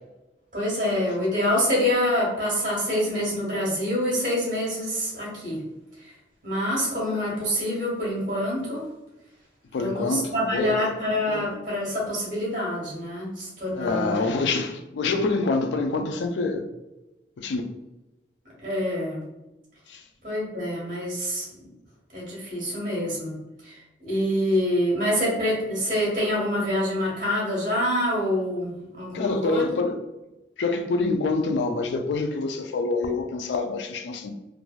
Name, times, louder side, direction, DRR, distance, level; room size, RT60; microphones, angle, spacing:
voice 1, 0.5-5.6 6.0-6.1 6.4-8.9 9.7-14.5 18.6-19.2 20.2-21.5 22.1-23.4 23.6-29.7, left 1 dB, 45° right, 1.2 m, -26 dB
voice 2, 9.7-10.7 11.3-11.5 13.8-16.7 17.4-17.7 19.9-20.0 29.1-30.0 30.6-34.3, left 3 dB, 85° left, 0.4 m, -26 dB
3.1 x 2.5 x 2.2 m
head